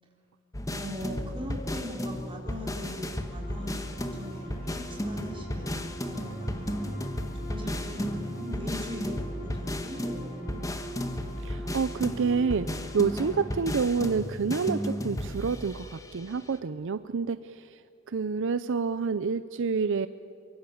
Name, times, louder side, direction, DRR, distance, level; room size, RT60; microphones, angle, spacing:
sound 1, 0.5-16.6, left 1 dB, 15° left, 1.4 m, -34 dB
voice 1, 0.7-3.8 4.1-6.8 7.3-10.6, equal, 25° right, -1 dB, 4.7 m, -40 dB
sound 2, 2.5-16.0, right 2 dB, 45° left, 5.3 m, -45 dB
voice 2, 11.4-17.8 18.1-20.1, right 5 dB, 60° right, 13 dB, 0.5 m, -28 dB
24.0 x 23.0 x 7.1 m, 2.7 s
head